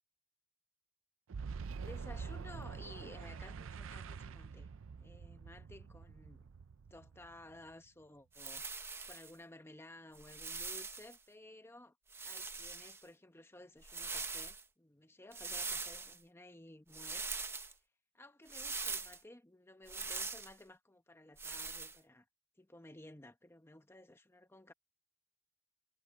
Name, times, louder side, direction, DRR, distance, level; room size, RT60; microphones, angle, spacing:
Boom, 1.3-7.9, right 5 dB, 75° right, 0.5 m, -46 dB
voice 1, 1.8-4.7 5.0-6.5 6.9-8.6 9.1-11.9 12.2-17.3 18.1-22.2 22.6-24.7, left 1 dB, 10° left, 1.1 m, -56 dB
sound 1, 8.3-9.3 10.1-11.2 12.1-13.0 13.8-14.6 15.3-16.2 16.9-17.7 18.5-19.2 19.9-20.5 21.4-22.0, right 4 dB, 10° right, 0.9 m, -42 dB
head